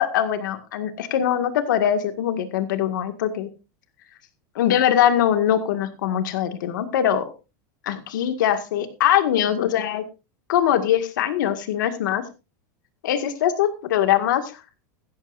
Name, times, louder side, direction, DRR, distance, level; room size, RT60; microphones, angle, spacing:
voice 1, 0.0-3.5 4.6-7.3 7.8-10.0 10.5-12.2 13.0-14.6, left 10 dB, 85° left, 8 dB, 1.9 m, -22 dB
15.5 x 14.0 x 2.6 m, 0.29 s
supercardioid pair, 165°, 10 cm